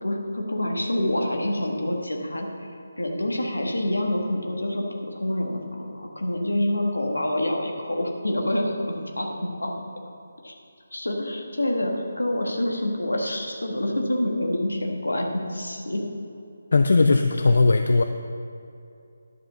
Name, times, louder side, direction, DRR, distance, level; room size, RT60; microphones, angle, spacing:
voice 1, 0.0-2.5 3.0-9.3 9.6-9.7 10.4-10.6 10.9-16.0, left 1 dB, 75° left, 1 dB, 1.6 m, -27 dB
voice 2, 16.7-18.0, left 3 dB, 55° left, 6 dB, 0.4 m, -18 dB
11.0 x 5.1 x 6.8 m, 2.6 s
figure-of-eight pair, 150°, 0 cm